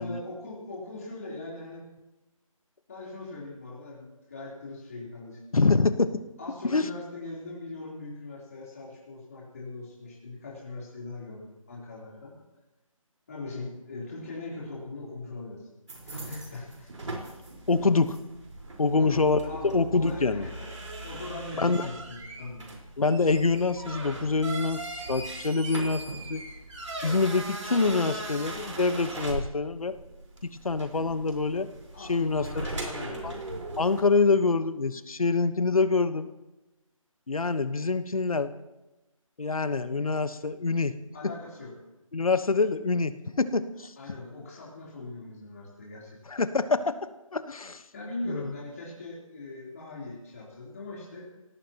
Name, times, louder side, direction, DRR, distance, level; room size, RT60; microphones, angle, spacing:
voice 1, 0.0-1.8 2.9-5.4 6.4-12.3 13.3-15.7 16.0-17.1 18.9-22.7 31.9-33.4 41.1-41.7 44.0-46.2 47.9-51.3, left 2 dB, 25° left, -5 dB, 3.6 m, -40 dB
voice 2, 5.5-6.1 6.7-6.9 17.7-18.2 18.8-19.4 19.6-20.5 21.5-21.9 23.0-24.8 25.1-26.4 27.0-30.0 30.4-31.7 32.1-32.7 33.2-33.3 33.8-36.3 37.3-38.5 39.4-40.9 42.1-43.9 46.3-47.0 47.3-47.8 48.3-48.5, left 4 dB, 80° left, 11 dB, 1.2 m, -25 dB
sound 1, 15.9-34.0, right 2 dB, 60° right, 4.5 m, -39 dB
26.0 x 17.5 x 3.0 m, 1.0 s
figure-of-eight pair, 175°, 18 cm